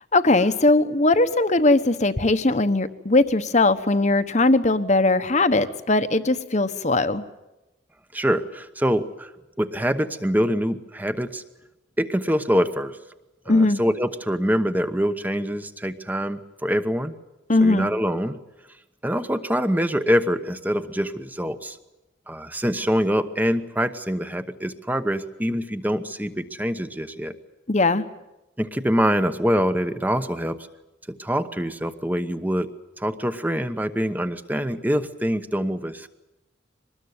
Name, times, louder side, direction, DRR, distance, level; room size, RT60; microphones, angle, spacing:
voice 1, 0.1-7.2 13.5-13.8 17.5-17.9 27.7-28.1, left 2 dB, 35° left, 11 dB, 1.1 m, -19 dB
voice 2, 8.1-9.3 9.6-11.4 12.0-13.0 13.5-17.1 17.6-18.4 19.0-21.8 22.3-27.3 28.6-30.6 31.1-32.7 33.0-36.1, equal, 10° right, 10 dB, 1.1 m, -24 dB
24.0 x 20.0 x 9.5 m, 1.0 s
head